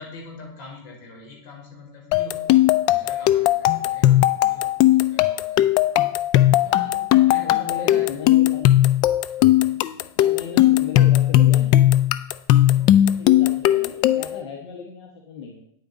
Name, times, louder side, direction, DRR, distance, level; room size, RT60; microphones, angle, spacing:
voice 1, 0.0-5.8 6.5-8.1 9.4-10.0 12.7-13.1, left 2 dB, 50° left, 0 dB, 4.1 m, -44 dB
sound 1, 2.1-14.4, left 13 dB, 30° left, 0.3 m, -18 dB
voice 2, 7.4-8.8 10.2-11.8 13.2-15.6, left 6 dB, 75° left, 1 dB, 1.4 m, -36 dB
9.1 x 8.8 x 4.0 m, 0.74 s
supercardioid pair, 150°, 13 cm